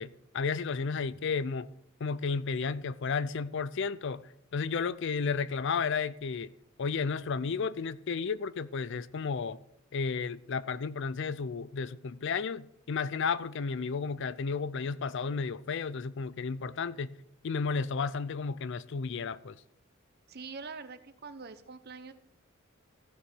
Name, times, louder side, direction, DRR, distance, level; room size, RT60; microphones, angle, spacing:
voice 1, 0.0-1.7 2.0-4.2 4.5-6.5 6.8-9.6 9.9-17.2 17.4-19.5, left 5 dB, 60° left, 0.5 m, -33 dB
voice 2, 20.3-22.1, right 4 dB, 50° right, 0.9 m, -44 dB
14.5 x 6.4 x 6.0 m
head